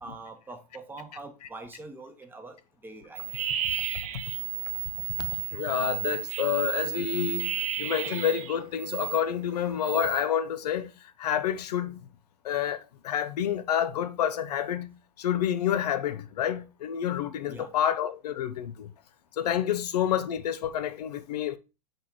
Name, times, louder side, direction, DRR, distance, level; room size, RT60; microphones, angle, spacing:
voice 1, 0.0-3.2 6.9-7.0 9.6-9.9 17.5-17.7 19.7-19.8, right 3 dB, 10° right, 0.7 m, -44 dB
sound 1, 3.2-9.2 9.6-10.2, right 11 dB, 60° right, 0.6 m, -33 dB
voice 2, 5.3-10.9 11.2-12.0 12.4-18.9 19.4-21.6, left 10 dB, 80° left, 0.5 m, -29 dB
4.4 x 3.2 x 3.6 m
hypercardioid pair, 115°, 20 cm